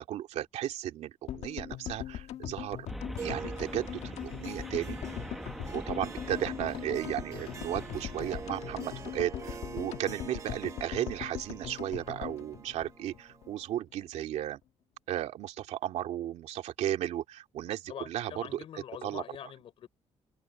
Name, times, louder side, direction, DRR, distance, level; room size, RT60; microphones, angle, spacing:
voice 1, 0.0-2.9 3.2-5.0 5.7-14.6 15.1-19.2, right 12 dB, 80° right, 2.6 m, -35 dB
sound 1, 1.3-13.5 13.8-13.9 14.0-14.1, left 11 dB, 70° left, 1.5 m, -41 dB
sound 2, 2.9-9.8, equal, ahead, 1.3 m, -43 dB
Harp, 3.1-13.7, right 5 dB, 30° right, 1.4 m, -46 dB
voice 2, 17.9-19.9, left 10 dB, 55° left, 6.0 m, -44 dB
cardioid pair, 175°, 11 cm